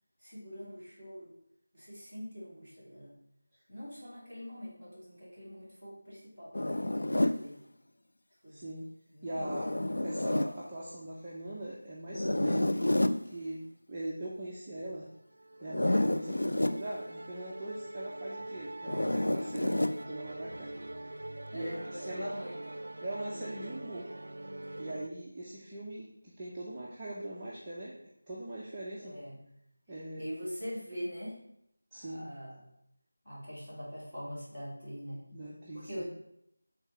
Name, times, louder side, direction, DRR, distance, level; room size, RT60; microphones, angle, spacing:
voice 1, 0.2-1.3 1.7-3.1 3.7-7.6 8.4-8.6 9.1-9.8 21.5-22.6 29.0-29.4 30.2-31.4 31.9-32.7 33.2-35.3 35.7-36.0, equal, 10° left, -13 dB, 2.8 m, -43 dB
Zipper (clothing), 6.5-7.4 9.4-10.5 12.1-13.2 15.6-16.8 18.8-20.0, left 1 dB, 80° left, 0.5 m, -29 dB
voice 2, 8.5-8.9 9.2-15.1 15.6-20.7 21.0-21.1 21.5-22.5 23.0-24.1 24.8-29.2 29.9-30.2 31.9-32.3 35.3-36.0, right 1 dB, 10° right, -8 dB, 0.6 m, -41 dB
Musical instrument, 15.0-25.1, right 1 dB, 75° right, 0.5 m, -43 dB
7.0 x 3.9 x 5.6 m, 0.76 s
figure-of-eight pair, 175°, 0 cm